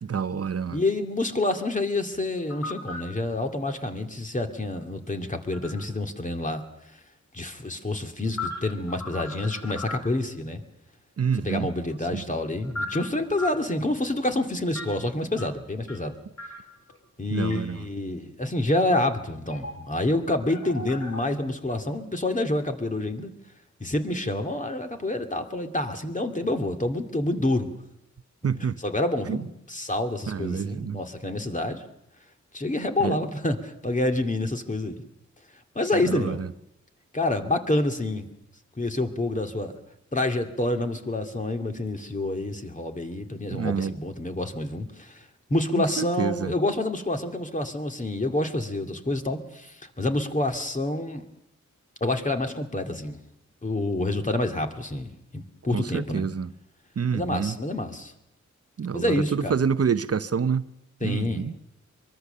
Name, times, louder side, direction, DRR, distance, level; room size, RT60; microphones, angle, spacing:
voice 1, 0.0-0.8 11.2-11.7 12.1-12.2 17.3-17.8 28.4-28.8 29.3-29.4 30.3-31.0 33.0-33.2 35.9-36.5 43.5-43.9 46.0-46.5 55.7-56.5 57.0-57.6 58.8-60.7 61.0-61.5, right 6 dB, 55° right, 0.8 m, -27 dB
voice 2, 0.7-6.6 7.3-10.6 11.3-16.1 17.2-23.3 23.8-27.7 28.6-31.8 32.5-35.0 35.8-36.4 37.1-38.3 38.8-39.7 40.1-45.2 45.5-51.3 52.0-53.2 53.6-56.3 57.1-58.1 58.9-59.6 61.0-61.5, left 2 dB, 25° left, 2.3 m, -28 dB
sound 1, 2.1-3.0 4.7-5.9 7.9-10.3 11.8-13.6 14.7-15.0 15.4-16.1 16.4-17.0 17.5-17.6 19.5-20.0 20.3-21.2, left 2 dB, 60° left, 4.5 m, -37 dB
23.5 x 23.0 x 6.8 m
wide cardioid pair, 110°, 30 cm